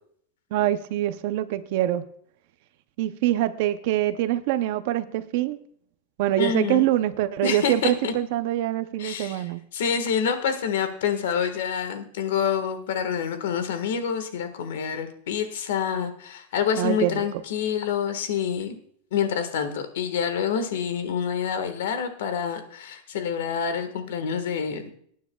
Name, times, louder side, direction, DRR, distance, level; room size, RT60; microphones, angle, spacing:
voice 1, 0.5-2.0 3.0-5.6 6.2-9.6 16.8-17.2, right 13 dB, 45° right, 12 dB, 0.5 m, -24 dB
voice 2, 6.4-6.9 7.4-8.1 9.0-9.4 9.7-18.8 19.1-24.9, left 7 dB, 70° left, 9 dB, 1.4 m, -27 dB
22.0 x 9.4 x 2.3 m, 0.63 s
supercardioid pair, 180°, 0 cm